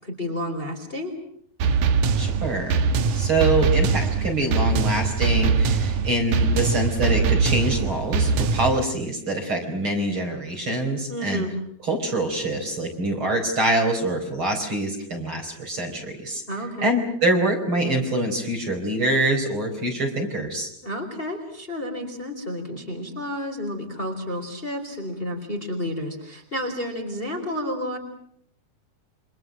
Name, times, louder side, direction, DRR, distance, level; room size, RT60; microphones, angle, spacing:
voice 1, 0.0-1.2 11.1-11.5 16.5-16.9 20.8-28.0, left 1 dB, 15° left, 3 dB, 3.8 m, -31 dB
sound 1, 1.6-8.8, right 5 dB, 60° right, 2.5 m, -22 dB
voice 2, 2.2-2.8 3.1-11.4 11.8-16.4 16.8-20.7, right 1 dB, 35° right, 3 dB, 4.9 m, -25 dB
29.5 x 26.0 x 6.3 m, 0.69 s
omnidirectional pair, 4.4 m